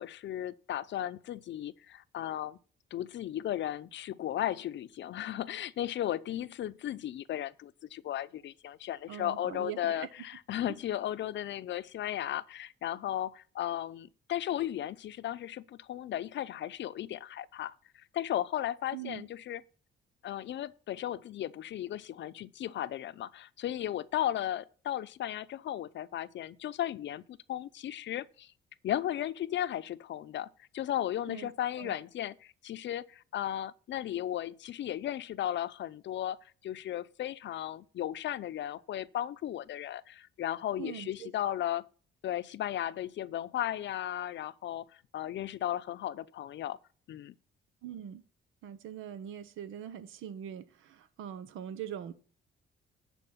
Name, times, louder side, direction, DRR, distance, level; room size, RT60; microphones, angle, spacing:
voice 1, 0.0-2.6 2.9-19.6 20.2-28.5 28.8-30.5 30.7-41.9 42.2-44.9 45.1-46.8 47.1-47.3, left 12 dB, 65° left, 0.7 m, -35 dB
voice 2, 9.1-10.1 10.7-10.8 18.9-19.3 31.3-31.5 31.8-32.0 40.8-41.5 47.8-48.2 48.6-52.1, right 10 dB, 85° right, 1.1 m, -42 dB
11.0 x 4.6 x 7.3 m
cardioid pair, 90°, 20 cm